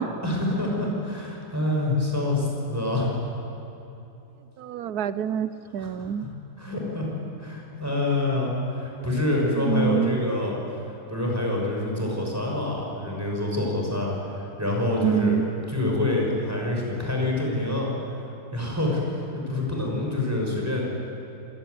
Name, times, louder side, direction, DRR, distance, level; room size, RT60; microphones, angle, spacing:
voice 1, 0.2-3.1 5.8-6.1 6.6-7.1 7.4-10.6 11.1-15.4 15.7-17.9 18.5-20.8, left 2 dB, 10° right, -2 dB, 6.2 m, -26 dB
voice 2, 4.6-6.3 9.7-10.2 15.0-15.5, right 8 dB, 80° right, 14 dB, 1.3 m, -26 dB
27.0 x 17.5 x 9.5 m, 2.9 s
omnidirectional pair, 1.6 m